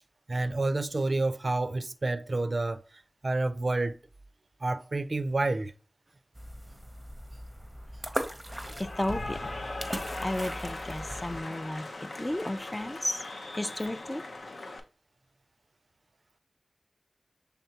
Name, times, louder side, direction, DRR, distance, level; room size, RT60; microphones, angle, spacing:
voice 1, 0.3-2.8 3.2-4.0 4.6-5.7, right 2 dB, 60° right, 0.3 m, -29 dB
sound 1, 6.3-11.4, equal, 15° right, 0.6 m, -39 dB
Cheering / Applause, 8.5-14.8, left 2 dB, 85° left, 0.5 m, -39 dB
voice 2, 8.8-9.5 10.2-13.2 13.5-14.2, left 1 dB, 20° left, 0.3 m, -33 dB
5.7 x 3.4 x 2.8 m
wide cardioid pair, 55°, 0 cm